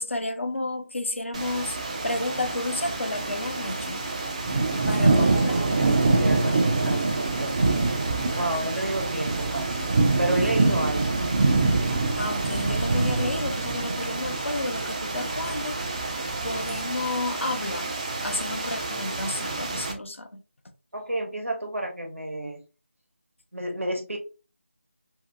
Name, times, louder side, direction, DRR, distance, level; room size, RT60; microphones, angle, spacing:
voice 1, 0.0-1.8 2.0-4.0 4.9-5.7 12.2-15.8 16.4-17.9 18.2-20.4, left 2 dB, 70° left, 0.6 m, -31 dB
sound 1, 1.3-19.9, right 3 dB, 30° right, 0.5 m, -26 dB
voice 2, 4.9-9.9 10.2-11.2 20.9-22.6 23.5-24.2, right 1 dB, 85° right, 1.1 m, -31 dB
2.9 x 2.8 x 2.5 m
figure-of-eight pair, 165°, 7 cm